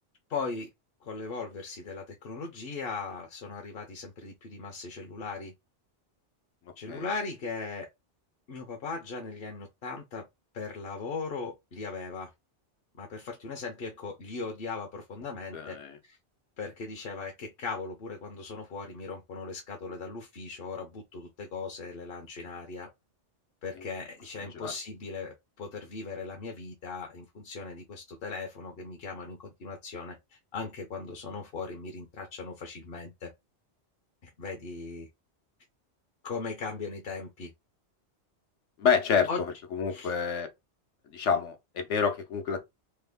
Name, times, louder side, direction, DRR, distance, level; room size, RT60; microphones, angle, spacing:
voice 1, 0.3-0.7 1.0-5.5 6.8-7.9 8.5-10.3 10.5-12.3 13.0-15.8 16.0-16.2 16.6-22.9 23.6-30.2 30.5-33.3 34.2-35.1 36.2-37.5 39.3-39.4 39.9-40.1, left 4 dB, 55° left, 0.8 m, -38 dB
voice 2, 15.5-15.9 24.6-24.7 38.8-39.3 39.7-40.5 41.1-42.6, left 6 dB, 80° left, 1.1 m, -27 dB
3.2 x 2.1 x 3.4 m
omnidirectional pair, 1.2 m